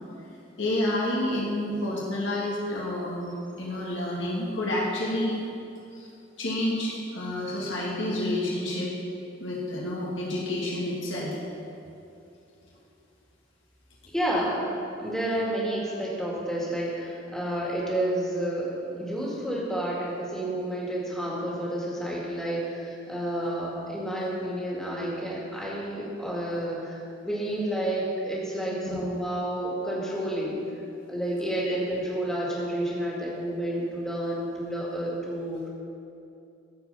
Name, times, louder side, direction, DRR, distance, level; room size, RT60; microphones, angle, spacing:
voice 1, 0.6-5.4 5.9-6.1 6.4-8.9 9.4-11.4 28.8-29.0 31.6-31.8, left 1 dB, 80° left, -5 dB, 1.7 m, -29 dB
voice 2, 14.1-14.7 14.9-27.0 27.2-30.6 31.1-35.7, right 1 dB, 5° left, -5 dB, 2.0 m, -30 dB
14.0 x 4.9 x 5.5 m, 2.7 s
head